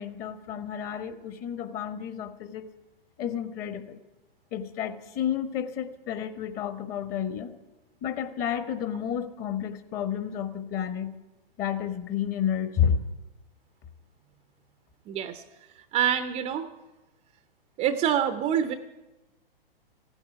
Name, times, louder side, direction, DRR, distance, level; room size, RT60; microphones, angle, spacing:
voice 1, 0.0-2.6 3.2-4.0 4.5-7.5 8.0-11.1 11.6-13.1, left 8 dB, 30° left, 9 dB, 1.3 m, -31 dB
voice 2, 15.1-15.4 15.7-16.7 17.8-18.7, right 9 dB, 20° right, 10 dB, 0.6 m, -26 dB
15.5 x 8.8 x 9.4 m, 1.1 s
hypercardioid pair, 120°, 30 cm